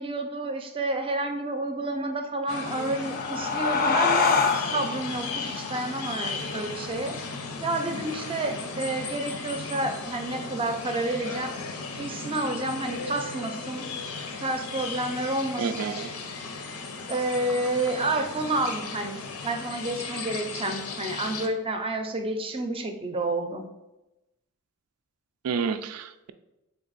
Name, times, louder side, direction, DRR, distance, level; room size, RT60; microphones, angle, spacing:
voice 1, 0.0-7.1 7.6-11.5 12.0-13.9 14.4-15.7 17.1-23.6, right 2 dB, 25° right, 5 dB, 0.5 m, -30 dB
sound 1, 2.5-21.5, left 4 dB, 85° left, 0.7 m, -36 dB
sound 2, 2.6-7.8, left 5 dB, 40° left, 0.4 m, -27 dB
voice 2, 15.6-16.1 25.4-26.3, right 6 dB, 80° right, 11 dB, 0.4 m, -30 dB
3.7 x 3.5 x 4.0 m, 0.96 s
head